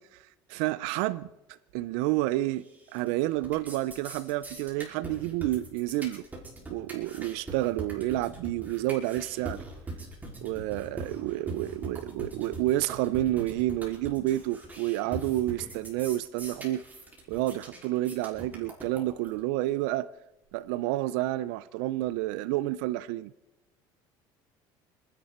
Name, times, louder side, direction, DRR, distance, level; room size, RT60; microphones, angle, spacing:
voice 1, 0.5-1.3 1.7-2.6 2.9-6.2 6.7-9.6 10.4-16.8 17.3-20.1 20.5-23.3, right 16 dB, 85° right, 0.5 m, -29 dB
sound 1, 2.6-3.1 3.4-19.4, right 2 dB, 15° right, 5.5 m, -41 dB
29.5 x 11.0 x 4.4 m
supercardioid pair, 105°, 10 cm